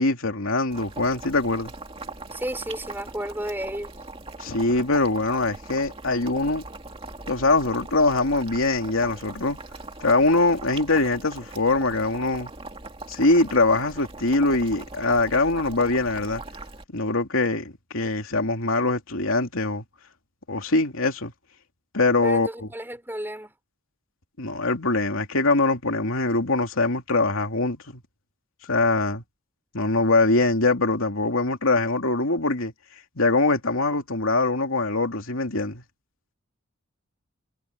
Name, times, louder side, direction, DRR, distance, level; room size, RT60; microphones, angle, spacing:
voice 1, 0.0-1.7 4.4-6.7 7.3-9.6 10.0-12.5 13.1-16.4 16.9-19.8 20.5-21.3 21.9-22.7 24.4-28.0 28.7-29.2 29.7-32.7 33.2-35.8, left 2 dB, 75° left, 2.8 m, -23 dB
Boiling, 0.7-16.8, right 3 dB, 25° right, 2.5 m, -40 dB
voice 2, 2.3-3.9 22.2-23.5, right 1 dB, 10° right, 4.2 m, -32 dB
head